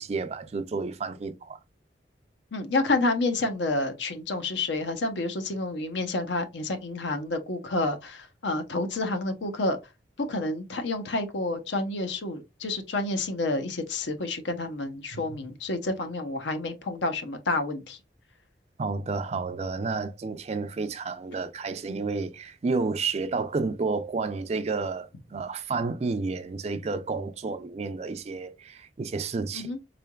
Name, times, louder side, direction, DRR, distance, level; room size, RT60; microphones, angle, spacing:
voice 1, 0.0-1.6 15.1-15.4 18.8-29.7, right 4 dB, 35° right, 0.4 m, -31 dB
voice 2, 2.5-9.8 10.2-18.0 29.5-29.8, left 2 dB, 80° left, 0.7 m, -29 dB
3.7 x 3.4 x 2.2 m
head